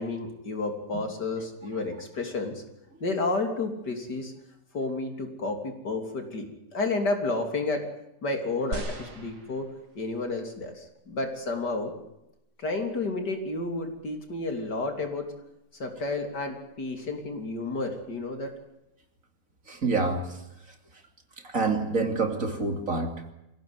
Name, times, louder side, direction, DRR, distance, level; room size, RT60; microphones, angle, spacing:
voice 1, 0.0-2.6 3.0-4.3 4.7-7.9 8.2-9.7 10.0-11.9 12.6-15.3 15.8-18.5, left 3 dB, 75° left, 4 dB, 3.8 m, -31 dB
sound 1, 8.7-10.2 11.0-11.1, right 2 dB, 70° right, 3.2 m, -38 dB
voice 2, 19.7-20.4 20.7-20.8 21.4-23.3, right 3 dB, 50° right, 5 dB, 3.2 m, -27 dB
24.5 x 17.0 x 9.6 m, 0.89 s
omnidirectional pair, 1.8 m